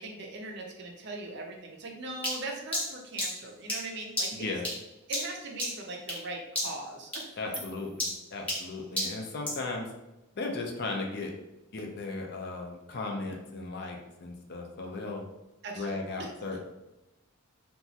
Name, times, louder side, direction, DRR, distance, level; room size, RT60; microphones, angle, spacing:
voice 1, 0.0-4.5 5.1-7.3 15.6-16.3, right 2 dB, 50° right, 1 dB, 0.5 m, -40 dB
sound 1, 2.2-6.3 6.5-6.9 7.1-9.7, left 1 dB, 5° left, 0.7 m, -34 dB
voice 2, 4.3-4.6 7.4-9.9 10.3-11.3 11.7-15.2 15.7-16.6, left 3 dB, 50° left, 2 dB, 0.4 m, -36 dB
2.9 x 2.3 x 2.7 m, 0.97 s
head